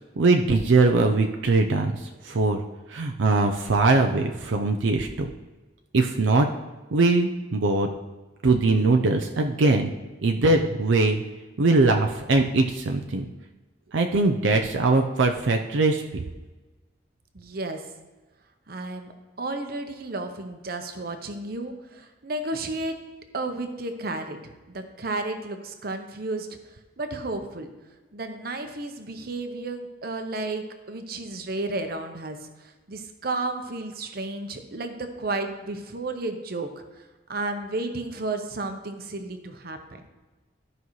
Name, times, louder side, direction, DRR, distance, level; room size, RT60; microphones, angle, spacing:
voice 1, 0.2-2.6 2.9-5.3 5.9-6.5 6.9-7.9 8.4-9.9 10.2-11.2 11.6-13.3 13.9-16.0, right 3 dB, 75° right, 3 dB, 0.6 m, -21 dB
voice 2, 17.3-17.8 18.7-19.1 19.4-23.0 23.3-26.6 27.0-27.7 28.1-36.7 37.3-40.0, right 2 dB, 50° right, 6 dB, 0.8 m, -32 dB
14.0 x 5.5 x 3.1 m, 1.2 s
head